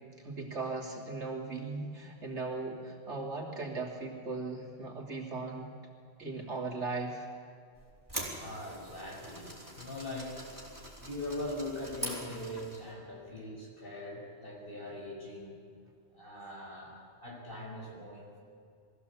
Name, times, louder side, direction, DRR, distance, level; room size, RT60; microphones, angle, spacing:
voice 1, 0.2-5.7 6.2-7.3, right 3 dB, 70° right, -2 dB, 3.4 m, -38 dB
sound 1, 7.8-12.9, right 1 dB, 15° right, 4.5 m, -43 dB
voice 2, 8.4-10.5 11.0-15.6 16.1-18.4, left 1 dB, 50° left, -2 dB, 5.5 m, -41 dB
22.0 x 15.5 x 8.5 m, 2.4 s
omnidirectional pair, 1.2 m